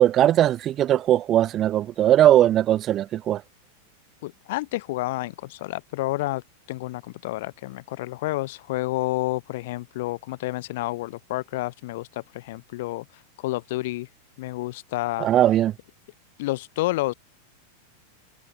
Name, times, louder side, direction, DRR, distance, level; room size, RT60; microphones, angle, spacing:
voice 1, 0.0-3.4 15.2-15.7, right 12 dB, 30° right, 0.4 m, -19 dB
voice 2, 4.2-6.4 6.7-13.0 13.4-14.1 14.4-15.3 16.4-17.1, left 18 dB, 50° left, 3.0 m, -29 dB
figure-of-eight pair, 90°, 0 cm